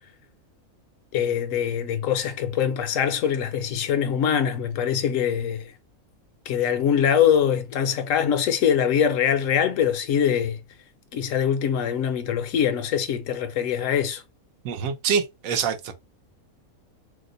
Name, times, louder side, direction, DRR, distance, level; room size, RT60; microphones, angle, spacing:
voice 1, 1.1-5.7 6.5-10.6 11.1-14.2, left 8 dB, 70° left, 0.9 m, -23 dB
voice 2, 14.6-15.9, right 6 dB, 75° right, 1.0 m, -25 dB
2.9 x 2.0 x 3.8 m
omnidirectional pair, 1.5 m